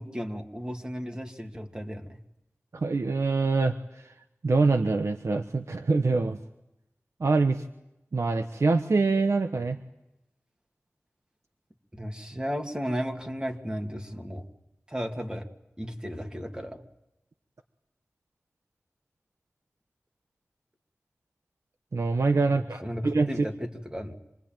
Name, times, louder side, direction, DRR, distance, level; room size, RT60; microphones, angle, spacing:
voice 1, 0.0-2.2 11.9-14.4 14.9-15.5 15.8-16.8 22.5-24.1, equal, 20° right, 3 dB, 2.3 m, -34 dB
voice 2, 2.7-3.8 4.4-6.4 7.2-7.6 8.1-9.8 21.9-23.3, right 3 dB, 80° right, 6 dB, 1.1 m, -24 dB
26.5 x 21.0 x 9.1 m, 0.90 s
wide cardioid pair, 65°, 5 cm